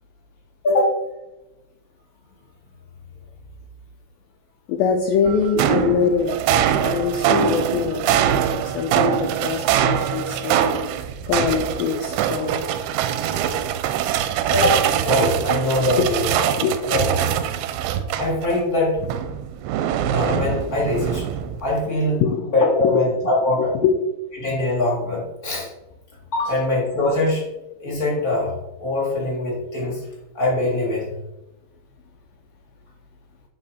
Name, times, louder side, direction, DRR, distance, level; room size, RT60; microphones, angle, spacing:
voice 1, 0.6-0.9 14.5-16.5 16.9-17.2 18.2-19.0 20.1-21.3 21.6-22.2 22.5-23.7 24.4-25.7 26.3-27.5 27.8-28.5 28.8-30.1 30.3-31.1, left 2 dB, 35° left, -5 dB, 1.5 m, -22 dB
voice 2, 4.7-12.6 16.0-16.1 16.6-16.7 22.2-22.4 22.8-23.0 23.6-24.0, left 6 dB, 85° left, 3 dB, 2.1 m, -23 dB
sound 1, 5.3-18.6 19.0-21.7, right 9 dB, 80° right, 2.3 m, -23 dB
11.0 x 4.6 x 4.2 m, 0.99 s
omnidirectional pair, 4.9 m